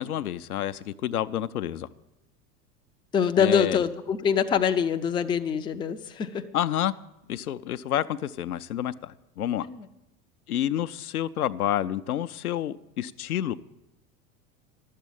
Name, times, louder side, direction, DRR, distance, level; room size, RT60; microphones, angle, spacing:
voice 1, 0.0-1.9 3.4-3.8 6.5-6.9 7.3-9.7 10.5-13.5, left 11 dB, 70° left, 0.6 m, -29 dB
voice 2, 3.1-6.4 9.6-9.9, left 7 dB, 10° left, 0.4 m, -25 dB
12.0 x 7.5 x 8.5 m
figure-of-eight pair, 80°, 46 cm